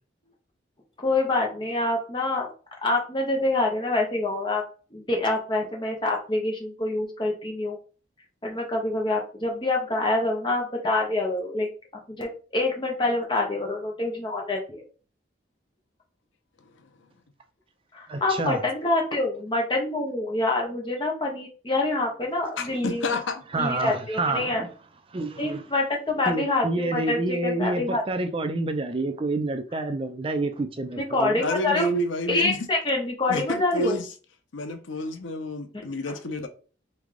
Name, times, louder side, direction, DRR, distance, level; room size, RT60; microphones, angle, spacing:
voice 1, 1.0-2.5 2.8-4.6 4.9-7.8 8.4-11.7 12.1-14.9 17.9-23.1 23.5-24.6 25.4-28.0 31.0-31.9 32.3-34.0 35.7-36.2, left 2 dB, 25° left, 1.1 m, -26 dB
voice 2, 18.1-18.6 23.5-24.7 25.1-25.6 26.3-31.4, right 2 dB, 30° right, 0.4 m, -28 dB
voice 3, 22.6-23.4 31.4-32.7 33.3-34.1 34.5-36.5, left 1 dB, 85° left, 0.7 m, -29 dB
3.6 x 3.3 x 3.6 m
head